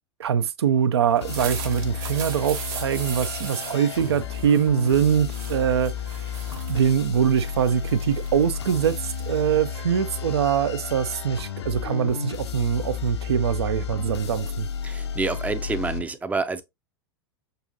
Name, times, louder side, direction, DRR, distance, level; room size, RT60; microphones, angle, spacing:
voice 1, 0.2-5.9 6.7-14.7, right 8 dB, 70° right, 0.5 m, -23 dB
sound 1, 1.0-10.3, right 7 dB, 50° right, 1.2 m, -39 dB
sound 2, 1.2-16.0, left 7 dB, 70° left, 0.6 m, -32 dB
voice 2, 14.8-16.6, right 3 dB, 10° right, 0.5 m, -28 dB
6.7 x 2.5 x 2.6 m
figure-of-eight pair, 90°, 14 cm